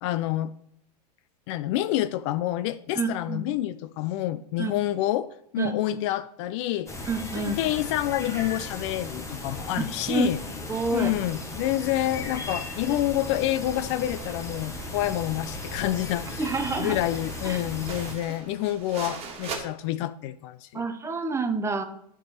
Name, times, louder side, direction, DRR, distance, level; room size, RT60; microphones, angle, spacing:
voice 1, 0.0-0.5 1.5-5.3 5.5-6.9 7.3-10.4 10.9-16.4 16.8-20.8, left 14 dB, 45° left, 13 dB, 0.4 m, -28 dB
voice 2, 3.0-3.5 4.6-4.7 5.6-6.0 7.1-7.6 10.1-10.3 10.7-11.1 12.9-13.0 16.4-17.0 17.4-17.6 20.7-21.8, right 3 dB, 15° right, 10 dB, 0.7 m, -28 dB
sound 1, 6.9-18.1, left 2 dB, 15° left, 1.3 m, -36 dB
sound 2, 13.6-19.6, right 5 dB, 30° right, 1.7 m, -42 dB
9.5 x 4.7 x 4.3 m, 0.73 s
hypercardioid pair, 110°, 21 cm